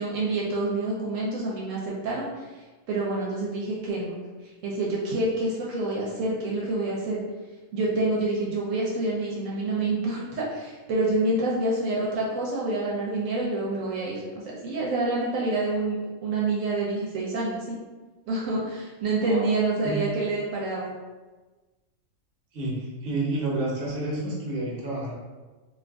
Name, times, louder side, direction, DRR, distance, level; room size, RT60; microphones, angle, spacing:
voice 1, 0.0-2.5 2.9-7.2 7.7-17.8 18.3-20.9, right 2 dB, 75° right, -4 dB, 1.0 m, -27 dB
voice 2, 19.2-19.5 19.8-20.0 22.5-25.1, right 2 dB, 50° right, -4 dB, 0.9 m, -29 dB
2.5 x 2.4 x 3.4 m, 1.3 s
omnidirectional pair, 1.4 m